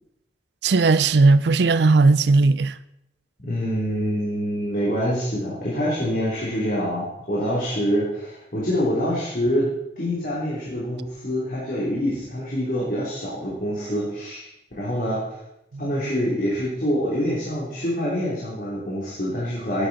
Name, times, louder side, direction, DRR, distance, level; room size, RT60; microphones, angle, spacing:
voice 1, 0.6-2.8, right 3 dB, 75° right, 0.5 m, -17 dB
voice 2, 3.4-14.5 14.8-15.4 15.8-19.9, equal, 50° left, 3.2 m, -26 dB
12.5 x 10.0 x 4.1 m
head